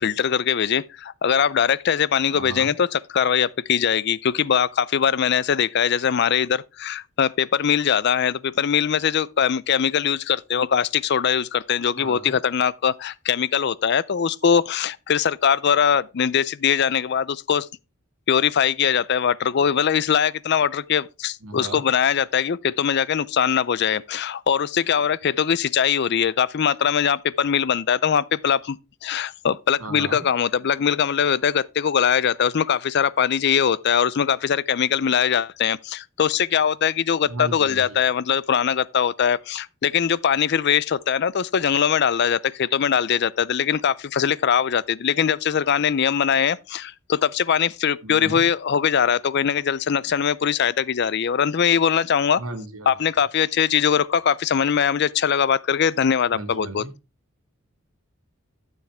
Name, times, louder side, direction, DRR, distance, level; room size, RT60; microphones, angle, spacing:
voice 1, 0.0-17.7 18.3-52.4 52.9-56.8, left 7 dB, 50° left, 0.4 m, -21 dB
voice 2, 2.3-2.7 12.0-12.4 21.4-21.9 29.8-30.3 37.3-38.0 48.0-48.4 52.4-53.0 56.3-56.9, right 2 dB, 90° right, 1.8 m, -35 dB
12.0 x 7.2 x 3.4 m
head